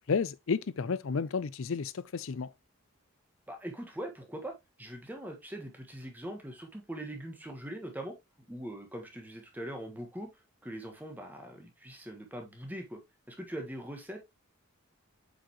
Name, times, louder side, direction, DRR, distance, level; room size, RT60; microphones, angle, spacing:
voice 1, 0.1-2.5, left 5 dB, 60° left, 0.5 m, -31 dB
voice 2, 3.5-8.1 8.5-10.3 10.6-13.0 13.3-14.2, right 1 dB, 10° right, 1.4 m, -42 dB
7.7 x 5.1 x 2.9 m
head